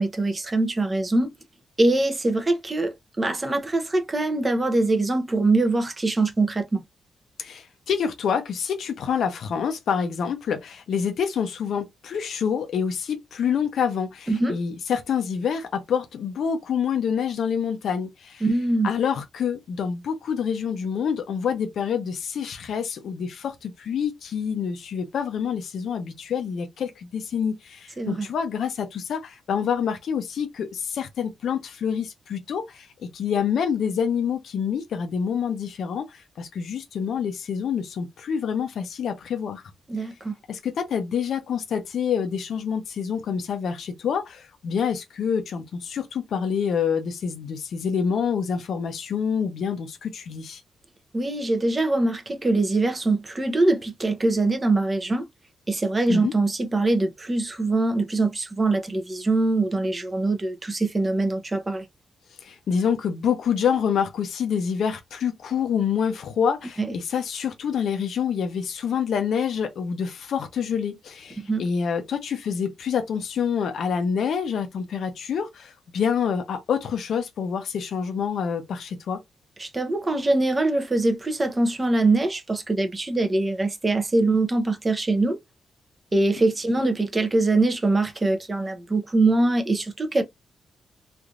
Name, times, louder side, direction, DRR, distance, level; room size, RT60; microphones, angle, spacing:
voice 1, 0.0-1.3 1.8-6.8 14.3-14.6 18.4-18.9 28.0-28.3 39.9-40.3 51.1-55.3 55.7-61.8 66.8-66.9 71.4-71.6 79.6-85.4 86.1-90.2, right 2 dB, 20° right, 0.7 m, -23 dB
voice 2, 7.4-18.4 18.8-39.6 40.5-50.6 56.1-56.3 62.4-79.2, left 7 dB, 70° left, 0.7 m, -27 dB
3.2 x 2.6 x 2.4 m
wide cardioid pair, 155°, 0 cm